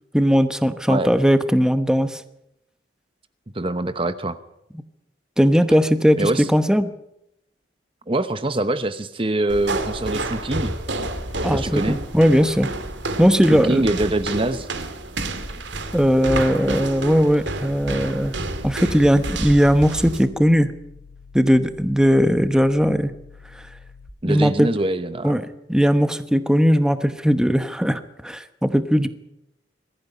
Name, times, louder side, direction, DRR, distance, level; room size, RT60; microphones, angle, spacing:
voice 1, 0.1-2.2 5.4-6.9 11.4-12.7 13.2-13.8 15.9-18.4 18.6-20.7 21.3-23.1 24.2-24.7 25.2-25.4 25.7-29.1, equal, 5° right, 10 dB, 1.0 m, -18 dB
voice 2, 3.5-4.4 6.2-6.5 8.1-10.7 11.5-12.0 13.5-14.7 24.2-25.4, right 1 dB, 30° right, 11 dB, 0.9 m, -24 dB
sound 1, 9.5-20.3, right 2 dB, 75° right, 2.3 m, -29 dB
sound 2, 17.9-24.1, left 4 dB, 90° left, 3.0 m, -46 dB
22.0 x 15.0 x 9.4 m, 0.81 s
head